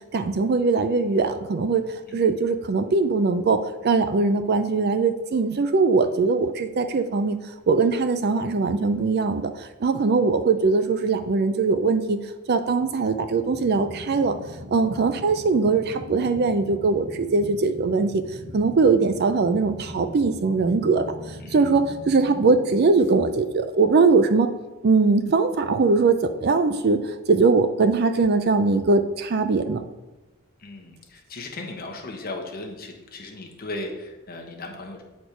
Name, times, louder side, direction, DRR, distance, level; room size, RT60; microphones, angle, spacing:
voice 1, 0.1-1.9 2.1-7.4 7.7-12.2 12.5-14.4 14.7-18.2 18.5-21.0 21.5-24.5 24.8-29.8, right 4 dB, 50° right, 10 dB, 0.4 m, -21 dB
sound 1, 12.8-23.7, equal, 90° right, 1.0 m, -41 dB
voice 2, 30.6-35.0, left 2 dB, 45° left, 1 dB, 1.1 m, -37 dB
8.3 x 4.3 x 4.5 m, 1.1 s
head